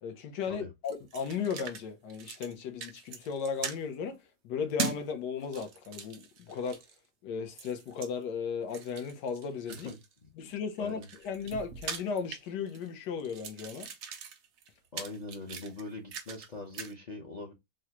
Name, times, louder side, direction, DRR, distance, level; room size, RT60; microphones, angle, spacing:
voice 1, 0.0-4.2 4.4-6.8 7.2-9.9 10.4-13.9, left 6 dB, 80° left, 1.3 m, -36 dB
sound 1, 0.8-1.8 2.1-2.5 2.8-3.8 4.8-5.0 5.4-7.0 7.6-8.1 8.7-10.1 10.7-12.9 13.2-16.5 16.7-16.9, right 5 dB, 65° right, 0.7 m, -40 dB
voice 2, 9.8-10.3 10.8-11.1 14.9-17.5, left 2 dB, 45° left, 0.5 m, -42 dB
3.7 x 2.2 x 2.8 m
omnidirectional pair, 1.8 m